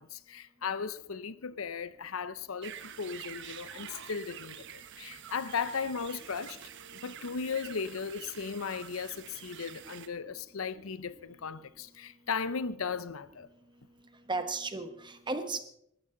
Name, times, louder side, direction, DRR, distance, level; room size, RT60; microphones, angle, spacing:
voice 1, 0.0-6.6 6.9-13.5, left 5 dB, 75° left, 0.7 m, -36 dB
sound 1, 2.6-10.1, right 9 dB, 60° right, 1.0 m, -47 dB
voice 2, 14.3-15.6, right 3 dB, 20° right, 1.3 m, -34 dB
19.0 x 14.0 x 3.9 m
head